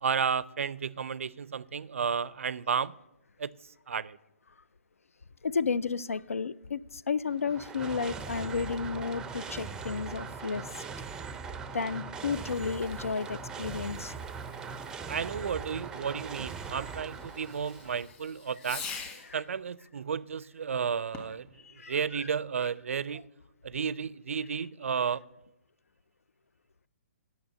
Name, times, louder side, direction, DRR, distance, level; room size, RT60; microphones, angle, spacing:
voice 1, 0.0-2.9 3.4-4.2 15.1-18.9 19.3-23.2 23.6-25.2, right 6 dB, 70° right, 0.4 m, -32 dB
voice 2, 5.4-10.7 11.7-14.1 19.2-19.4 21.6-22.0, left 5 dB, 85° left, 0.4 m, -32 dB
sound 1, 7.3-18.1, right 5 dB, 10° right, 0.4 m, -40 dB
Fireworks, 12.3-19.4 21.0-21.5, left 6 dB, 20° left, 1.9 m, -47 dB
9.3 x 6.8 x 7.6 m
figure-of-eight pair, 135°, 7 cm